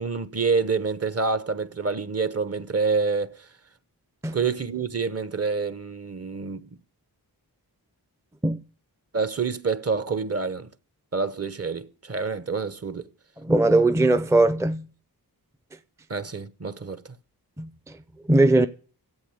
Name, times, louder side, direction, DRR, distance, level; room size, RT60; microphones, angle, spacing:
voice 1, 0.0-3.5 4.3-6.7 9.1-10.7 11.1-13.1 16.1-17.2, right 4 dB, 40° right, 0.9 m, -27 dB
voice 2, 13.4-14.9 17.6-17.7 18.3-18.7, right 2 dB, 10° right, 0.6 m, -19 dB
14.0 x 8.4 x 8.0 m
wide cardioid pair, 115°, 39 cm